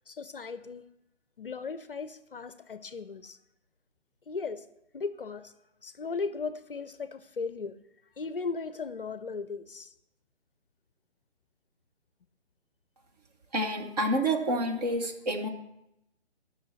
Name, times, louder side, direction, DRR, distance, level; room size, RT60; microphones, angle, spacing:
voice 1, 0.1-0.9 1.4-3.4 4.3-4.7 4.9-5.5 5.8-7.8 8.2-9.9, left 4 dB, 50° left, 0.5 m, -37 dB
voice 2, 13.5-15.5, right 1 dB, 35° right, 1.1 m, -28 dB
18.5 x 6.3 x 4.1 m
figure-of-eight pair, 145°, 35 cm